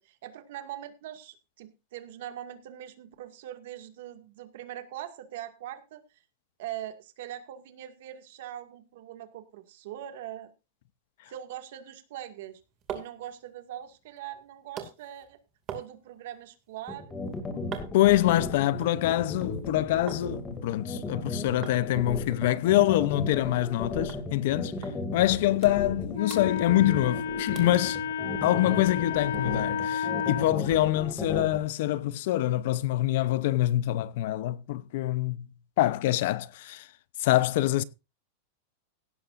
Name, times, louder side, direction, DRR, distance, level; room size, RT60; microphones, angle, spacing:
voice 1, 0.0-6.2 6.6-10.5 11.3-12.6 12.9-15.4 15.7-17.2, right 12 dB, 55° right, 2.1 m, -42 dB
sound 1, 12.4-20.3 20.6-21.3 21.6-21.8 22.1-22.2 22.5-23.8 24.1-24.2 24.8-25.0 25.3-26.0 26.3-27.2 27.6-27.8 28.3-28.4, right 8 dB, 25° right, 2.4 m, -45 dB
sound 2, 16.9-31.6, left 3 dB, 10° left, 2.6 m, -35 dB
voice 2, 17.9-24.7 25.1-28.0 28.4-35.5 35.8-36.9 37.2-37.8, left 14 dB, 50° left, 0.7 m, -25 dB
Wind instrument woodwind instrument, 26.1-30.5, left 7 dB, 90° left, 1.5 m, -31 dB
17.0 x 12.0 x 2.6 m
supercardioid pair, 175°, 0 cm